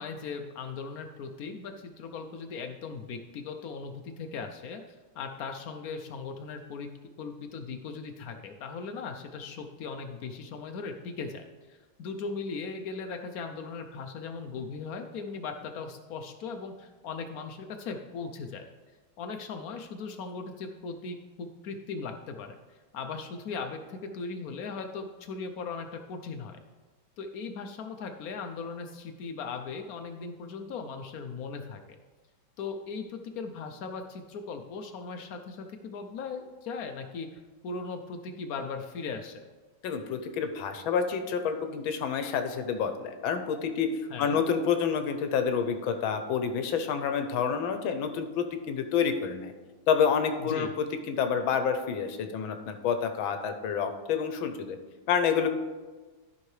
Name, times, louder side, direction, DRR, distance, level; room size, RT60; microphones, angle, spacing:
voice 1, 0.0-6.9 7.2-18.7 19.2-26.6 27.2-32.0 32.6-39.5 44.1-44.4 50.4-50.7, left 4 dB, 70° left, 6 dB, 0.9 m, -38 dB
voice 2, 39.8-43.9 44.2-49.5 49.9-50.7 51.1-54.8 55.1-55.5, left 7 dB, 85° left, 7 dB, 1.5 m, -28 dB
13.5 x 5.6 x 3.2 m, 1.3 s
omnidirectional pair, 2.1 m